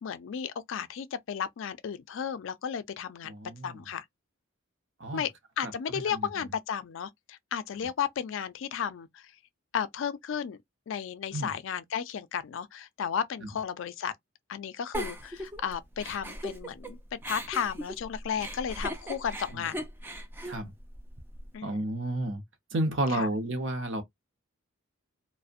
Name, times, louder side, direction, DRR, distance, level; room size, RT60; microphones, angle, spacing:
voice 1, 0.0-3.3 3.6-4.0 5.1-5.3 5.6-9.3 9.7-10.6 10.9-14.1 14.5-19.9 21.5-21.8 23.1-23.3, left 7 dB, 65° left, 0.3 m, -34 dB
voice 2, 3.2-3.8 5.0-5.3 5.6-6.3 11.3-11.5 13.4-13.5 19.5-19.6 20.4-20.7 21.6-22.4 22.7-24.0, right 1 dB, 60° right, 0.7 m, -31 dB
Giggle, 14.9-16.9 17.2-21.5, equal, 10° right, 0.4 m, -38 dB
2.5 x 2.0 x 2.4 m
head